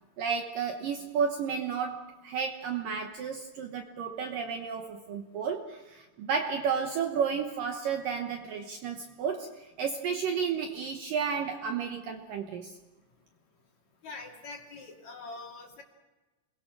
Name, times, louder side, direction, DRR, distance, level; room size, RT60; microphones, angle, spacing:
voice 1, 0.2-12.8, right 6 dB, 65° right, 2.3 m, -32 dB
voice 2, 14.0-15.8, left 3 dB, 45° left, 3.2 m, -44 dB
29.0 x 22.0 x 6.2 m
omnidirectional pair, 5.1 m